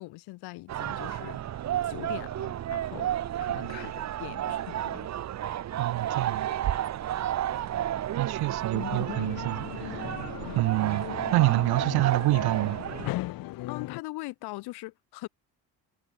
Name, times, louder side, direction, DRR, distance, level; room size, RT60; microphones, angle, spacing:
voice 1, 0.0-3.1 3.4-5.1 13.7-15.3, left 21 dB, 85° left, 1.3 m, -41 dB
sound 1, 0.7-13.1, right 11 dB, 45° right, 1.0 m, -32 dB
voice 2, 5.8-6.5 8.2-10.2 10.5-11.1 11.3-12.8, right 19 dB, 75° right, 1.2 m, -27 dB
sound 2, 8.7-14.0, left 17 dB, 65° left, 0.8 m, -37 dB
cardioid pair, 120°, 38 cm